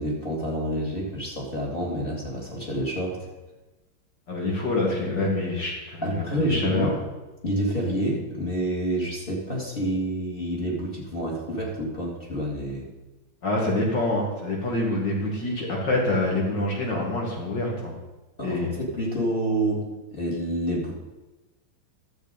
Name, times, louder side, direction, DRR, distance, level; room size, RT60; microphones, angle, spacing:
voice 1, 0.0-3.3 6.0-6.9 7.4-12.9 18.4-20.9, right 1 dB, 25° left, -3 dB, 2.7 m, -28 dB
voice 2, 4.3-7.0 13.4-17.9 18.4-18.7, left 2 dB, 60° left, -2 dB, 2.8 m, -26 dB
12.5 x 7.5 x 5.2 m, 1.1 s
omnidirectional pair, 2.2 m